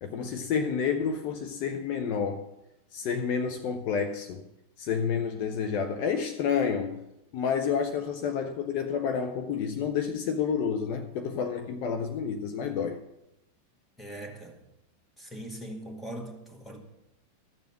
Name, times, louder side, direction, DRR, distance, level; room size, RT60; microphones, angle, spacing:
voice 1, 0.0-2.4 2.9-4.5 4.8-7.0 7.3-13.0, left 6 dB, 45° left, 0.8 m, -29 dB
voice 2, 14.0-14.6 15.2-16.8, right 1 dB, 5° left, 1.9 m, -41 dB
13.5 x 7.0 x 5.8 m
figure-of-eight pair, 90°, 0 cm